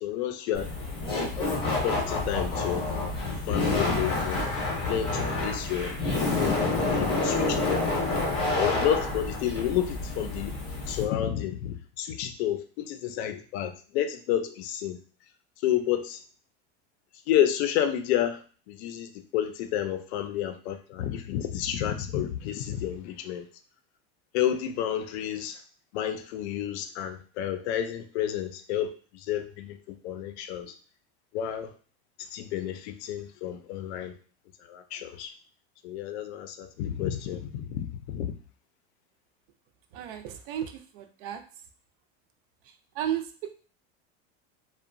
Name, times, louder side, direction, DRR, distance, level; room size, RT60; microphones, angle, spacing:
voice 1, 0.0-0.7 1.5-2.9 3.5-4.4 4.8-5.9 6.4-7.8 8.6-10.6 10.9-15.0 15.6-16.2 17.3-23.5 24.3-25.6 25.9-30.7 31.3-31.7 32.2-34.1 34.7-35.3 35.8-38.3, left 10 dB, 90° left, 8 dB, 0.5 m, -30 dB
Laughter, 0.5-11.1, left 3 dB, 15° left, 0.6 m, -28 dB
voice 2, 39.9-41.4 43.0-43.5, right 10 dB, 60° right, 8 dB, 0.4 m, -34 dB
2.8 x 2.2 x 2.5 m, 0.41 s
cardioid pair, 170°, 32 cm